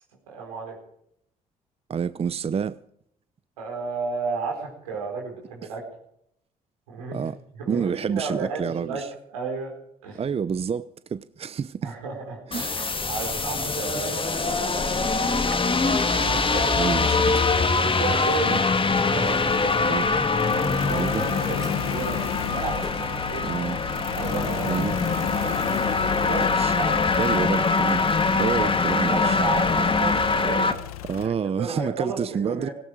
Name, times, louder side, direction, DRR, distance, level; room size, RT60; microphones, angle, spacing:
voice 1, 0.3-0.8 3.6-5.8 6.9-7.2 7.6-9.0 9.3-9.7 10.0-10.2 11.8-12.4 12.7-15.4 16.2-16.7 17.7-18.5 19.1-19.8 20.6-23.4 24.1-24.8 25.2-25.4 26.1-27.4 29.1-30.7 31.1-32.7, right 4 dB, 85° right, 4.7 m, -33 dB
voice 2, 1.9-2.8 7.1-7.4 7.7-9.1 10.1-11.9 12.5-12.7 16.2-16.4 16.8-17.4 18.5-18.6 19.9-20.1 20.9-21.2 23.4-23.8 24.7-25.0 26.3-26.7 27.1-28.0 28.4-29.4 31.0-32.7, right 6 dB, 35° right, 0.7 m, -28 dB
sound 1, 12.5-30.7, left 4 dB, 30° left, 2.1 m, -23 dB
sound 2, 15.4-25.9, equal, 5° left, 1.7 m, -41 dB
sound 3, 19.2-31.3, left 12 dB, 85° left, 0.8 m, -34 dB
18.5 x 16.5 x 4.7 m
hypercardioid pair, 50°, 18 cm